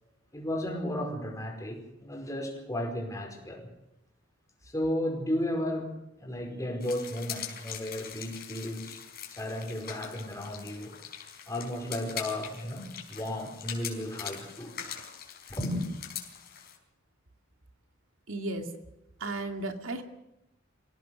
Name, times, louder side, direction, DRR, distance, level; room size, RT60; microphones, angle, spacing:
voice 1, 0.3-3.7 4.6-5.9 6.2-9.0 9.3-10.9 11.5-14.8 15.5-15.8, left 1 dB, 15° left, 2 dB, 4.9 m, -34 dB
sound 1, 6.8-16.8, left 9 dB, 50° left, 4.7 m, -42 dB
voice 2, 18.3-18.6 19.2-20.0, right 2 dB, 90° right, 5 dB, 2.4 m, -34 dB
26.0 x 17.0 x 6.5 m, 0.90 s
head